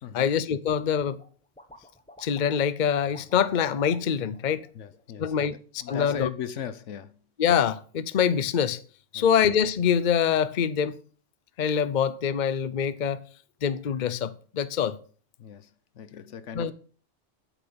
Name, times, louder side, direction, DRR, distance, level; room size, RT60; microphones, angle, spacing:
voice 1, 0.1-1.2 2.2-4.7 5.2-5.5 5.9-6.3 7.4-8.8 9.1-11.0 11.6-13.2 13.6-15.0 16.5-16.7, left 8 dB, 45° left, 0.7 m, -25 dB
sound 1, 1.2-1.3 1.6-2.7 3.0-5.2 5.8-6.0, equal, 5° left, 1.2 m, -51 dB
voice 2, 4.7-7.2 9.1-9.3 15.4-16.7, left 9 dB, 75° left, 1.1 m, -38 dB
9.2 x 7.8 x 7.0 m
omnidirectional pair, 1.3 m